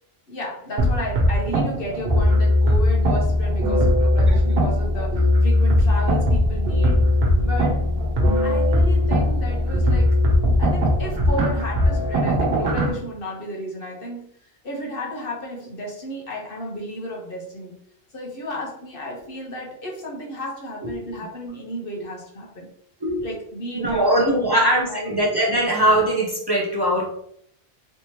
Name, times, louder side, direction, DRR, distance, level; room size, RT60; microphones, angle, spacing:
voice 1, 0.3-7.0 7.4-7.9 8.4-10.2 10.6-14.4 14.6-17.7 18.1-22.7 23.2-25.1, equal, 65° left, -1 dB, 1.1 m, -33 dB
sound 1, 0.8-12.9, left 1 dB, 75° right, 1.0 m, -19 dB
voice 2, 4.3-4.6 20.8-20.9 23.0-23.2 23.7-27.1, right 1 dB, 25° right, -3 dB, 0.7 m, -21 dB
3.3 x 2.9 x 3.0 m, 0.68 s
omnidirectional pair, 1.0 m